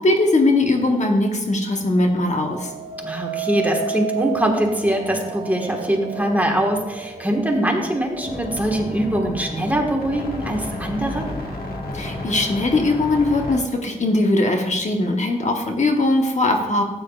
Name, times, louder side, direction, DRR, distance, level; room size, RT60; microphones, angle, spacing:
voice 1, 0.0-2.7 11.9-16.8, left 2 dB, 50° left, 3 dB, 1.1 m, -20 dB
sound 1, 2.3-11.5 12.0-12.5, right 8 dB, 40° right, 0.8 m, -33 dB
voice 2, 3.0-11.3, right 1 dB, 10° right, 1 dB, 1.5 m, -22 dB
sound 2, 8.2-13.6, left 1 dB, 85° left, 1.6 m, -32 dB
14.5 x 8.8 x 2.4 m, 1.1 s
wide cardioid pair, 95°, 15 cm